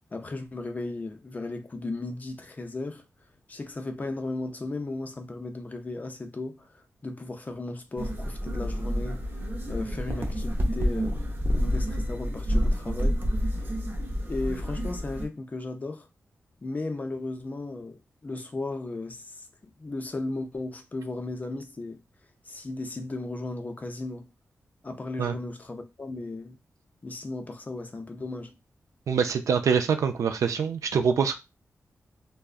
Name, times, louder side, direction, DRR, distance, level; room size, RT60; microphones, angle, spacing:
voice 1, 0.0-3.0 3.5-9.2 9.7-11.2 11.5-13.5 14.3-16.1 16.6-19.5 19.8-22.0 22.5-24.3 24.8-26.6 27.0-28.5, left 2 dB, 30° left, 0.5 m, -35 dB
sound 1, 8.0-15.3, equal, 35° right, 0.6 m, -28 dB
voice 2, 29.1-31.4, right 6 dB, 90° right, 0.4 m, -24 dB
3.4 x 2.0 x 2.4 m
wide cardioid pair, 120°, 5 cm